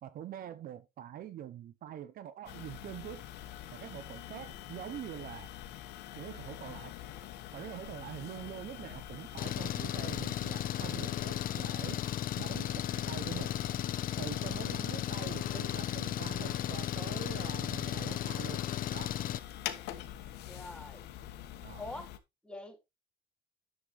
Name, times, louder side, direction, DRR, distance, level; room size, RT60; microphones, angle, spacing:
voice 1, 0.0-3.3 3.7-5.5 6.1-6.9 7.5-12.0 12.4-13.5 14.2-18.6 18.9-19.2 21.6-21.8, right 10 dB, 60° right, 0.8 m, -44 dB
sound 1, 2.5-22.2, left 12 dB, 80° left, 1.3 m, -46 dB
Engine, 9.4-19.4, left 11 dB, 55° left, 0.8 m, -35 dB
voice 2, 20.5-21.0 21.8-22.1 22.4-22.8, left 2 dB, 5° left, 2.4 m, -44 dB
10.0 x 7.3 x 3.2 m
cardioid pair, 110°, 17 cm